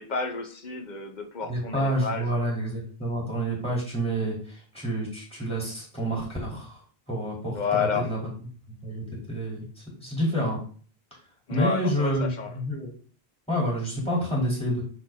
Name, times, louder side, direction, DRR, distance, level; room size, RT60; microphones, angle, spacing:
voice 1, 0.0-2.3 7.5-8.1 11.5-12.5, left 5 dB, 50° left, 5 dB, 1.0 m, -30 dB
voice 2, 1.5-6.8 7.1-8.2 8.8-10.6 11.5-12.9 13.5-14.8, equal, 5° left, -4 dB, 2.8 m, -28 dB
6.2 x 4.2 x 3.6 m, 0.43 s
omnidirectional pair, 1.0 m